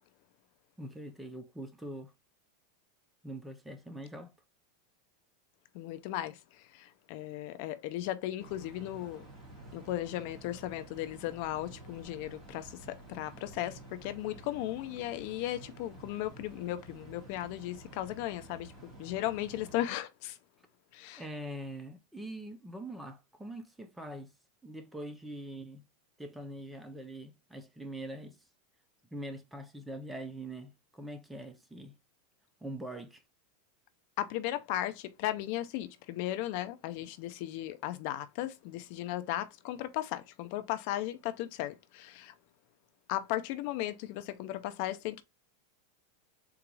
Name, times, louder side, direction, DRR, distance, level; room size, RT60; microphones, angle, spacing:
voice 1, 0.8-2.1 3.2-4.3 21.2-24.3 24.6-25.8 26.2-28.4 29.1-31.9 32.6-33.2, right 1 dB, 5° right, 0.5 m, -43 dB
voice 2, 5.7-6.4 6.7-9.3 9.7-18.7 19.0-20.4 20.9-21.2 34.2-42.3 43.1-45.2, left 14 dB, 50° left, 0.5 m, -36 dB
sound 1, 8.4-19.9, right 2 dB, 20° right, 1.9 m, -51 dB
3.9 x 2.4 x 4.6 m
supercardioid pair, 155°, 0 cm